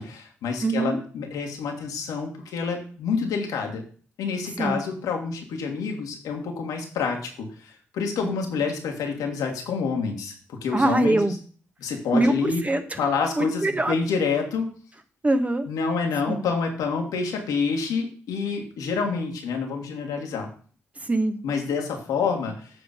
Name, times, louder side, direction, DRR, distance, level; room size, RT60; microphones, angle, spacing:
voice 1, 0.0-3.8 4.2-11.3 11.8-12.6 13.0-14.7 15.7-20.5 21.4-22.7, left 5 dB, 70° left, 2 dB, 1.7 m, -28 dB
voice 2, 0.6-1.0 4.6-4.8 8.2-8.3 10.7-11.3 12.1-13.0 13.4-13.9 15.2-15.7 16.3-16.4 21.0-21.3, right 2 dB, 20° right, 8 dB, 1.1 m, -23 dB
7.9 x 3.8 x 5.3 m, 0.42 s
hypercardioid pair, 40°, 6 cm